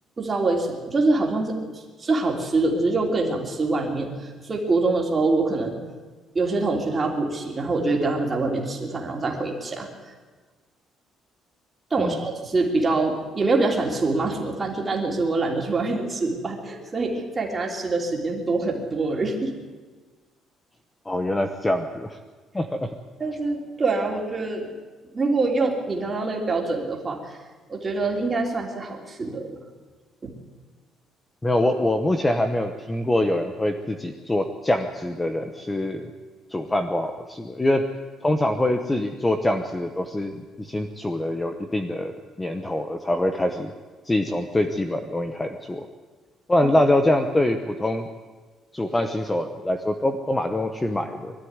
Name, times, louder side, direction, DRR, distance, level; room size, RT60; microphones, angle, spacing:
voice 1, 0.2-5.8 6.3-9.9 11.9-19.5 23.2-24.7 25.1-27.4 27.7-29.6 30.2-30.3, right 3 dB, 20° right, 0 dB, 3.1 m, -25 dB
voice 2, 21.1-22.2 22.5-22.9 31.4-36.1 36.5-37.8 38.2-43.7 44.0-45.9 46.5-48.1 48.7-51.3, left 1 dB, 10° left, 6 dB, 0.9 m, -24 dB
22.5 x 13.0 x 9.6 m, 1.3 s
cardioid pair, 180°, 0 cm